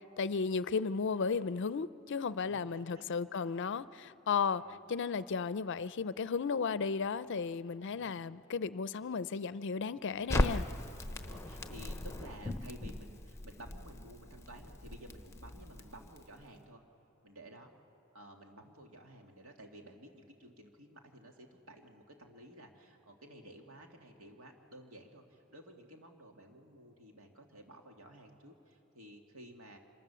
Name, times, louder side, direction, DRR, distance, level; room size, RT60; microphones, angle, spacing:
voice 1, 0.2-4.6 4.9-10.7, left 5 dB, 60° left, 0.5 m, -34 dB
voice 2, 2.4-3.5 4.3-4.8 7.8-8.2 11.1-16.8 17.2-17.7 18.1-29.8, right 1 dB, 80° right, 2.2 m, -54 dB
Crackle, 10.3-16.4, left 1 dB, 15° left, 0.9 m, -38 dB
26.0 x 23.0 x 6.9 m
head